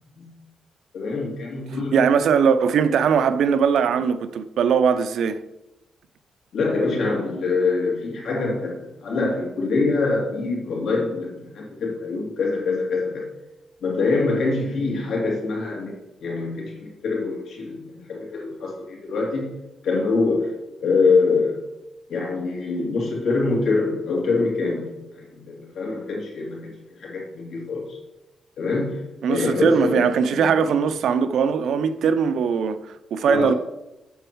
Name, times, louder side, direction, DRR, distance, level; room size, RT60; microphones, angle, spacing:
voice 1, 0.9-2.0 6.5-13.3 13.8-19.5 19.8-20.5 20.8-21.6 22.1-28.0 28.6-29.0 29.3-30.5 33.3-33.6, left 3 dB, 65° left, 3.0 m, -24 dB
voice 2, 1.9-5.4 29.2-33.5, right 6 dB, 70° right, 0.5 m, -20 dB
8.1 x 7.1 x 4.6 m
wide cardioid pair, 155°, 0 cm